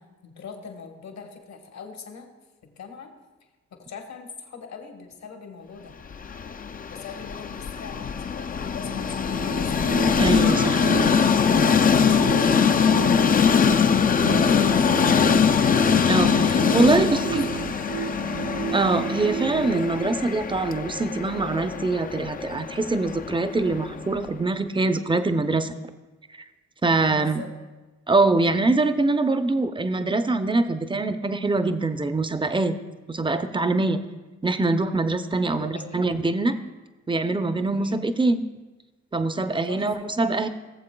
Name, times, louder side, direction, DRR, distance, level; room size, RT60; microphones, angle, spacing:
voice 1, 0.0-2.3 2.6-3.1 3.7-6.0 6.9-9.9 10.5-15.6 17.0-18.3 26.8-27.5 35.5-36.1 37.7-38.1 39.6-39.9, left 6 dB, 65° left, 4 dB, 1.3 m, -42 dB
Train, 6.1-24.2, left 6 dB, 30° left, 0.4 m, -22 dB
sound 1, 8.8-20.7, right 8 dB, 65° right, 0.7 m, -33 dB
voice 2, 10.2-10.8 16.1-17.4 18.7-25.7 26.3-26.4 26.8-27.4 28.1-32.8 33.1-34.0 34.4-36.6 37.1-38.4 39.1-40.5, right 3 dB, 15° right, 10 dB, 0.6 m, -23 dB
18.5 x 7.2 x 2.3 m, 1.2 s
supercardioid pair, 55°, 30 cm